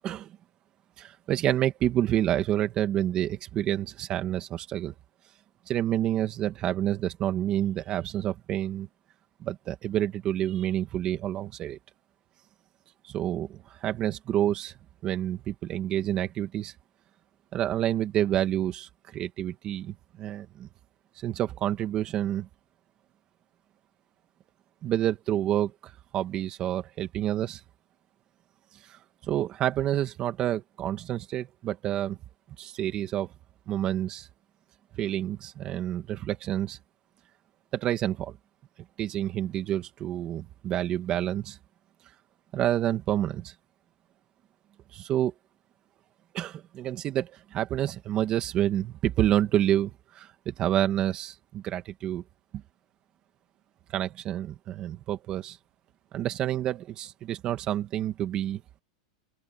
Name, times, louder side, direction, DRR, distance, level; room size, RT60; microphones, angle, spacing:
voice 1, 0.0-0.4 1.0-4.9 5.7-8.9 9.4-11.8 13.0-14.7 15.0-16.7 17.5-20.7 21.2-22.5 24.8-27.6 28.9-32.2 32.6-33.3 33.7-34.3 34.9-36.8 37.7-38.4 39.0-41.6 42.5-43.5 44.9-45.3 46.3-52.2 52.5-52.6 53.9-55.6 56.1-58.6, right 12 dB, 30° right, 2.0 m, -28 dB
open air
supercardioid pair, 160°, 3 cm